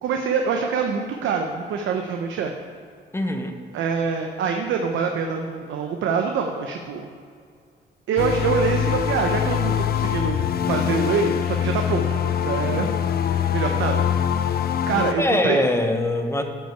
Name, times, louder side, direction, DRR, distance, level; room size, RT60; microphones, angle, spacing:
voice 1, 0.0-2.5 3.7-7.1 8.1-12.9 13.5-14.0 14.9-15.6, right 6 dB, 75° right, 3 dB, 0.8 m, -25 dB
voice 2, 3.1-3.6 15.2-16.4, left 1 dB, 15° left, 5 dB, 1.0 m, -22 dB
sound 1, 8.2-15.1, left 9 dB, 50° left, 0.5 m, -23 dB
13.0 x 5.4 x 4.6 m, 2.2 s
cardioid pair, 90°, 20 cm